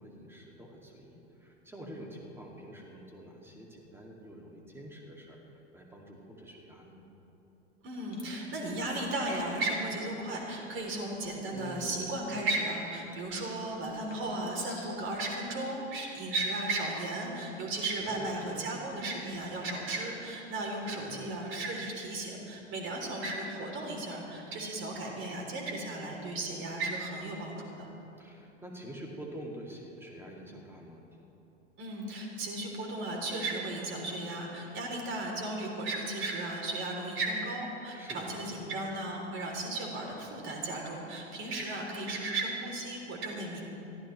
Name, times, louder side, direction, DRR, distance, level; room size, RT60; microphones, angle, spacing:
voice 1, 0.0-7.0 11.5-12.1 18.0-18.9 20.9-21.4 28.2-31.0 37.9-38.7, equal, 5° right, -1 dB, 2.5 m, -47 dB
voice 2, 7.8-27.9 31.8-43.6, right 2 dB, 35° right, 0 dB, 3.5 m, -35 dB
sound 1, 8.1-8.4 8.8-9.1 11.6-11.8 13.7-14.9, left 3 dB, 75° left, 4.3 m, -54 dB
23.0 x 14.0 x 3.3 m, 3.0 s
figure-of-eight pair, 95°, 36 cm